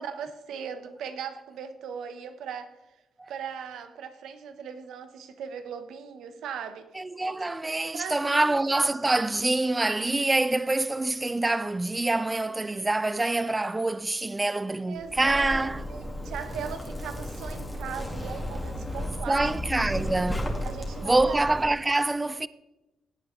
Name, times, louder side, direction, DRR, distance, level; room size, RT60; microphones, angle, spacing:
voice 1, 0.0-2.7 3.3-6.9 7.9-8.4 14.9-19.5 20.6-21.4, right 7 dB, 85° right, 1.0 m, -38 dB
voice 2, 6.9-15.8 19.3-20.5 21.0-22.5, right 2 dB, 15° right, 0.3 m, -26 dB
Zipper (clothing), 15.0-21.6, left 1 dB, 10° left, 1.9 m, -34 dB
16.5 x 8.4 x 3.2 m
cardioid pair, 100°, 0 cm